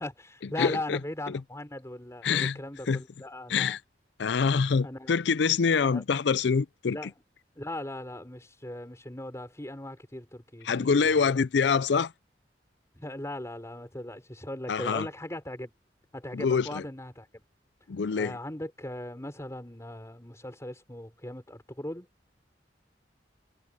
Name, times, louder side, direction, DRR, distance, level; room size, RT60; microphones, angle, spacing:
voice 1, 0.0-3.8 4.8-5.1 5.8-6.0 6.9-7.1 7.6-11.4 13.0-15.7 16.1-17.4 18.1-22.1, left 1 dB, 15° left, 4.1 m, -39 dB
voice 2, 0.6-1.0 1.3-1.4 2.2-2.6 2.9-3.0 3.5-3.8 4.2-7.0 10.6-12.1 14.7-15.1 16.3-16.8 17.9-18.3, left 5 dB, 70° left, 0.5 m, -25 dB
head